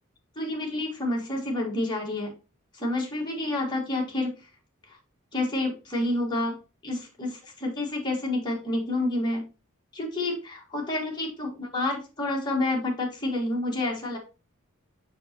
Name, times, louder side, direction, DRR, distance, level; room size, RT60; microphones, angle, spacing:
voice 1, 0.3-2.3 2.7-4.3 4.9-5.0 5.3-9.5 9.9-14.2, left 2 dB, 20° left, -1 dB, 1.8 m, -29 dB
6.8 x 5.5 x 3.0 m, 0.31 s
head